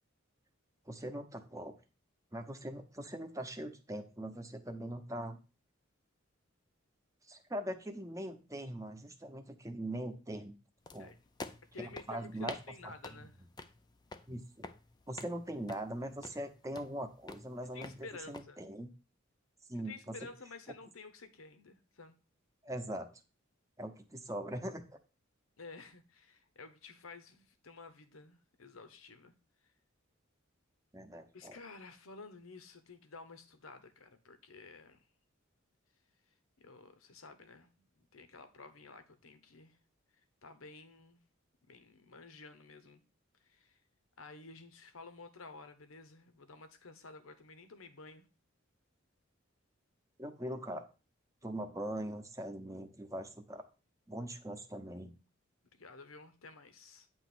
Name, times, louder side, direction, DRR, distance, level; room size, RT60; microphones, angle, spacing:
voice 1, 0.9-1.7 2.3-5.4 7.3-10.5 10.9-11.1 11.8-12.6 12.8-12.9 14.3-14.7 15.1-18.9 19.7-20.1 22.6-23.1 23.8-25.0 30.9-31.6 50.2-50.8 51.4-53.6 54.1-55.1, right 1 dB, 15° right, 0.8 m, -41 dB
sound 1, 10.9-18.4, left 3 dB, 20° left, 0.4 m, -50 dB
voice 2, 11.7-13.4 17.7-18.6 19.7-22.1 25.6-29.3 29.6-29.7 31.3-35.1 36.3-39.8 40.4-41.2 41.7-43.0 43.4-43.8 44.2-48.3 55.7-57.1, left 3 dB, 90° left, 1.0 m, -52 dB
9.0 x 3.1 x 6.0 m
head